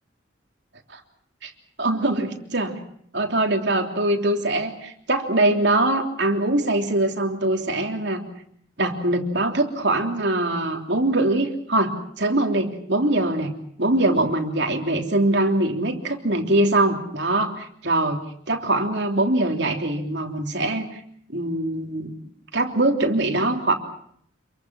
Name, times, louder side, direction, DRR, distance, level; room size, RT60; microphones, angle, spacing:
voice 1, 1.8-2.7 3.1-8.2 8.8-13.5 13.8-18.2 18.5-21.0 21.3-22.1 22.5-23.8, right 2 dB, 65° right, 3 dB, 3.3 m, -22 dB
27.0 x 23.5 x 6.2 m, 0.67 s
head